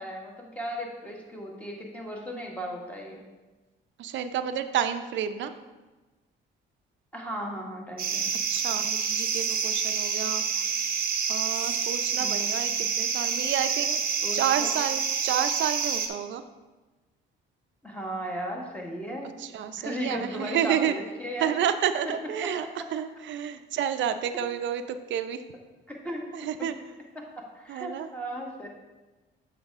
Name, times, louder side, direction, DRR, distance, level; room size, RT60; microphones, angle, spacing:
voice 1, 0.0-3.2 7.1-8.3 12.1-12.8 14.2-14.7 17.8-19.3 19.8-21.5 22.4-22.7 24.3-24.4 25.9-26.3 26.6-26.7 27.1-28.7, equal, 5° left, -1 dB, 1.6 m, -36 dB
voice 2, 4.0-5.5 8.5-10.4 11.3-12.7 13.0-14.0 14.3-16.4 19.4-20.9 21.4-22.6 22.9-25.4 26.3-26.7 27.7-28.1, right 9 dB, 70° right, 10 dB, 0.5 m, -30 dB
sound 1, 8.0-16.1, right 6 dB, 50° right, 0.9 m, -28 dB
7.3 x 5.8 x 3.6 m, 1.2 s
cardioid pair, 90°, 20 cm